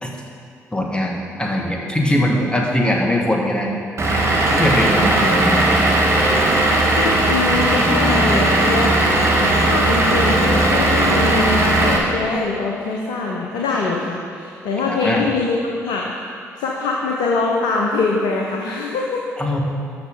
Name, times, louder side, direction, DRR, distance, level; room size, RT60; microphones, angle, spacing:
voice 1, 0.7-3.7 4.6-5.7 14.8-15.3 19.4-19.6, left 1 dB, 10° left, 0 dB, 1.7 m, -21 dB
Vehicle / Engine, 4.0-12.0, right 1 dB, 35° right, 1.7 m, -17 dB
voice 2, 6.9-9.0 9.4-19.3, left 3 dB, 65° left, -1 dB, 0.9 m, -23 dB
11.5 x 6.5 x 3.8 m, 2.3 s
figure-of-eight pair, 45°, 8 cm